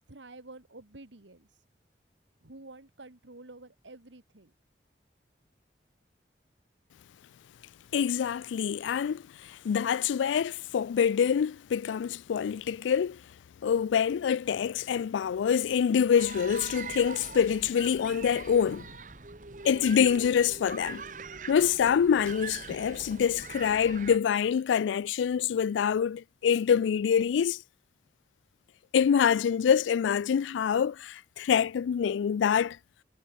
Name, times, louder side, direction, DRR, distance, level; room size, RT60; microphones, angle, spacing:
voice 1, 0.1-1.5 2.4-4.5, right 2 dB, 85° right, 2.0 m, -49 dB
voice 2, 7.9-13.2 13.6-18.8 19.6-21.0 21.5-27.6 28.9-32.8, left 7 dB, 90° left, 0.3 m, -26 dB
sound 1, 16.2-24.2, right 5 dB, 45° right, 1.3 m, -43 dB
head